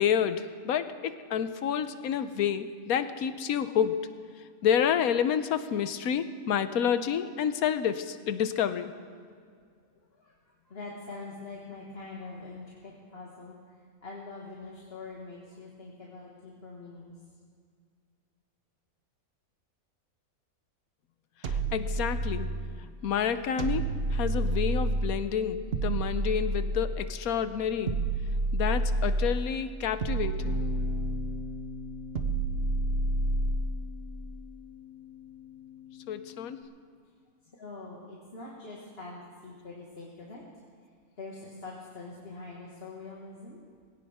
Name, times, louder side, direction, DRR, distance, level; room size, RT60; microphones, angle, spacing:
voice 1, 0.0-4.1 4.6-8.9 21.4-22.5 23.0-28.0 28.5-30.6 36.1-36.6, left 8 dB, 85° left, 11 dB, 1.2 m, -29 dB
voice 2, 9.9-17.2 37.6-40.4 41.2-43.6, left 3 dB, 45° left, -4 dB, 2.1 m, -44 dB
sound 1, 21.4-22.8 23.6-25.2 25.7-27.1 27.9-29.5 30.0-31.4 32.1-33.8, right 2 dB, 50° right, 1.0 m, -29 dB
Bass guitar, 30.4-36.6, left 3 dB, 85° right, 2.1 m, -42 dB
21.0 x 17.0 x 3.6 m, 2.1 s
omnidirectional pair, 1.5 m